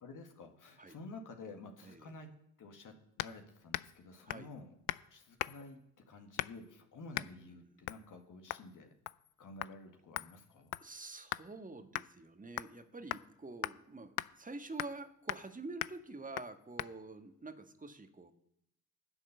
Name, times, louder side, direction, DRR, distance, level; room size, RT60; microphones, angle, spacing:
voice 1, 0.0-2.3 2.6-4.7 5.1-5.8 6.1-8.9 9.4-10.8, left 3 dB, 45° left, 4 dB, 2.0 m, -51 dB
voice 2, 1.8-2.1 4.2-4.5 7.1-7.5 10.8-18.3, right 2 dB, 20° right, 8 dB, 1.6 m, -47 dB
sound 1, 3.2-3.4 3.7-4.0 4.3-4.5 4.9-5.1 5.4-5.7 6.4-6.7 7.1-7.3 7.9-8.0 8.5-8.7 9.1-9.3 9.6-9.7 10.2-11.5 11.9-12.1 12.6-12.8 13.1-13.3 13.6-13.8 14.2-14.3 14.8-15.0 15.3-15.5 15.8-16.0 16.4-16.5 16.8-16.9, left 20 dB, 60° left, 0.5 m, -39 dB
10.5 x 7.0 x 6.8 m, 0.79 s
figure-of-eight pair, 45°, 43 cm